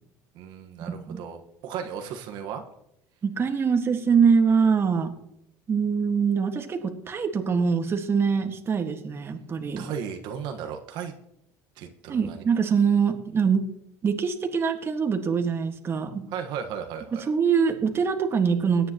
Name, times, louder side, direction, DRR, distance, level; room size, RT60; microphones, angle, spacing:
voice 1, 0.3-2.6 9.8-11.1 11.7-12.4 16.3-17.3, right 7 dB, 65° right, 4 dB, 1.4 m, -35 dB
voice 2, 3.2-5.1 5.7-9.9 12.1-13.7 14.0-16.3 17.1-18.9, right 6 dB, 30° right, 5 dB, 1.7 m, -24 dB
21.5 x 9.4 x 3.0 m, 0.77 s
supercardioid pair, 115°, 8 cm